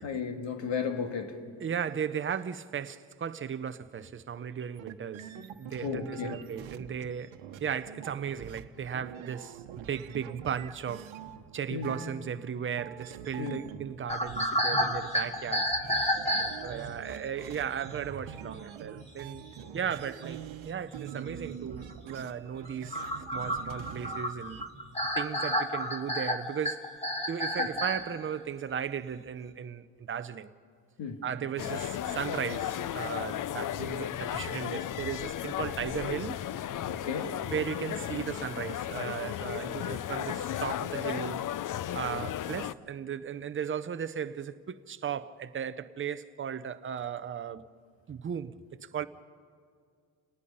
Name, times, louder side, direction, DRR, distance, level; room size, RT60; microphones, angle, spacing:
voice 1, 0.0-1.4 5.8-6.4 11.7-12.0 13.4-13.6 27.6-27.7 31.0-31.2 36.9-37.4, left 6 dB, 75° left, 2.0 m, -34 dB
voice 2, 1.6-5.3 5.6-7.3 7.6-11.1 11.5-15.7 16.6-19.4 19.7-23.0 23.3-24.6 25.2-26.8 27.3-30.5 31.2-36.4 37.5-41.4 41.9-47.7 48.1-48.5 48.8-49.1, right 8 dB, 30° right, 0.5 m, -36 dB
sound 1, 4.8-12.5 12.8-24.7, right 8 dB, 90° right, 1.1 m, -45 dB
sound 2, 14.1-17.0 17.8-17.9 18.2-18.4 19.0-19.1 19.3-19.9 20.5-20.6 20.9-21.0 21.7-21.9 22.3-28.1, equal, 15° left, 1.7 m, -31 dB
sound 3, 31.6-42.7, left 11 dB, 45° left, 0.4 m, -35 dB
29.0 x 19.0 x 5.5 m
cardioid pair, 140°, 45 cm